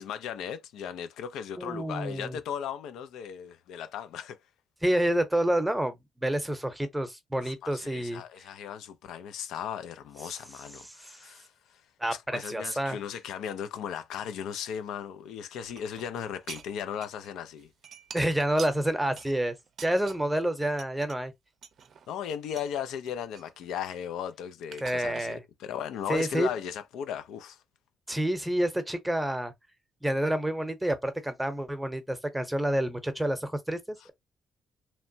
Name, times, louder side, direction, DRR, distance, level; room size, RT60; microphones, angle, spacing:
voice 1, 0.0-4.4 7.4-11.8 12.1-17.7 22.1-27.6, left 8 dB, 85° left, 0.4 m, -37 dB
voice 2, 1.6-2.4 4.8-8.2 11.0-11.2 12.0-13.0 18.1-19.5 19.8-21.3 24.8-25.4 26.1-26.5 28.1-29.5 30.0-34.1, right 1 dB, 5° right, 0.7 m, -28 dB
sound 1, 15.6-17.3 17.6-20.5 20.8-21.1 21.6-22.7 23.1-24.2 24.7-25.3, right 7 dB, 60° right, 0.4 m, -47 dB
2.9 x 2.1 x 2.6 m
cardioid pair, 90°, 0 cm